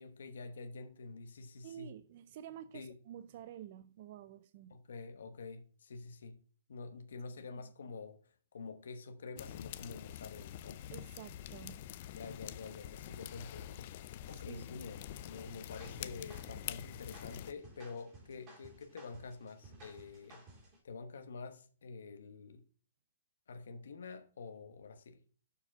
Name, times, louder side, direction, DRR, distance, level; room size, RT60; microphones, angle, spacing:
voice 1, 0.0-1.9 2.7-2.9 4.7-6.4 6.7-8.2 8.5-10.8 12.1-13.9 14.3-20.4 20.8-22.6 23.5-25.2, left 4 dB, 80° left, 1.0 m, -47 dB
voice 2, 1.6-4.7 7.4-7.5 10.9-11.8 14.5-14.7, right 10 dB, 45° right, 0.4 m, -50 dB
sound 1, 9.4-17.5, left 12 dB, 45° left, 0.5 m, -46 dB
sound 2, 15.5-20.8, right 2 dB, 25° right, 2.9 m, -57 dB
6.9 x 4.9 x 6.1 m
hypercardioid pair, 150°, 0 cm